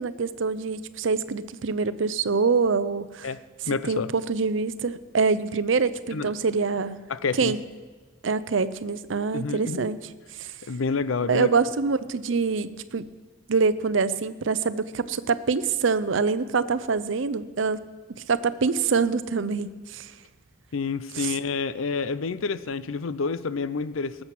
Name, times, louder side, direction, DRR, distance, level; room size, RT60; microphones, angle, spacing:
voice 1, 0.0-3.3 3.9-7.0 7.4-7.6 8.2-10.0 10.4-10.5 11.3-13.1 13.5-17.8 18.1-20.1 21.1-21.3, right 4 dB, 65° right, 0.6 m, -25 dB
voice 2, 3.6-4.1 6.1-6.3 7.1-7.6 9.3-9.9 10.7-11.5 20.7-24.2, left 4 dB, 80° left, 0.6 m, -28 dB
18.5 x 7.6 x 6.0 m
head